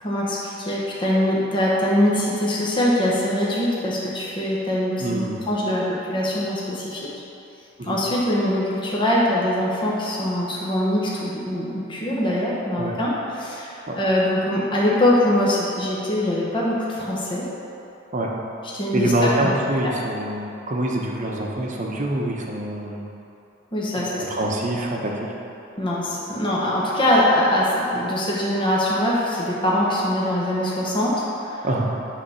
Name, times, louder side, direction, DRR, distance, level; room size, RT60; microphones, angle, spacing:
voice 1, 0.0-5.2 5.5-7.1 7.8-17.4 18.7-19.1 19.8-19.9 23.7-24.2 25.8-31.6, left 1 dB, 25° left, -6 dB, 1.1 m, -23 dB
voice 2, 5.0-5.4 7.8-8.0 12.8-12.9 13.9-14.0 18.1-18.3 18.9-23.0 24.2-25.1 31.6-31.9, right 1 dB, 40° right, -1 dB, 0.9 m, -25 dB
9.5 x 3.5 x 5.6 m, 2.9 s
head